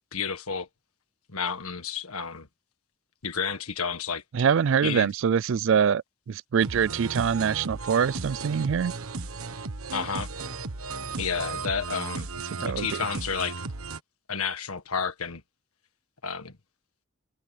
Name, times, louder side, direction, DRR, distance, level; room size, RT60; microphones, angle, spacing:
voice 1, 0.1-0.7 1.3-2.5 3.2-4.2 4.8-5.1 9.9-10.3 11.1-12.3 12.6-13.5 14.3-15.4 16.2-16.5, left 6 dB, 85° left, 1.7 m, -31 dB
voice 2, 4.3-8.9 12.6-13.0, right 7 dB, 60° right, 0.3 m, -24 dB
sound 1, 6.6-14.0, right 4 dB, 80° right, 1.5 m, -35 dB
head